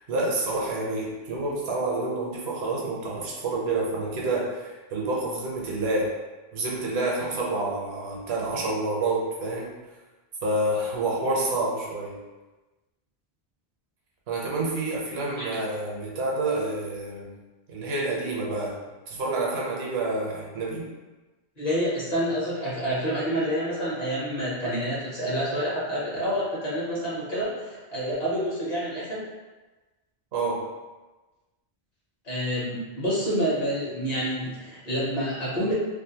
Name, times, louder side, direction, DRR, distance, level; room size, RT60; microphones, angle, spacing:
voice 1, 0.0-6.1 6.5-9.8 10.4-12.2 14.3-17.3 17.7-18.8 19.1-20.9 30.3-30.6, right 2 dB, 75° right, -3 dB, 0.9 m, -28 dB
voice 2, 21.6-29.3 32.2-35.7, equal, 45° left, -7 dB, 0.8 m, -28 dB
2.5 x 2.1 x 2.7 m, 1.2 s
omnidirectional pair, 1.1 m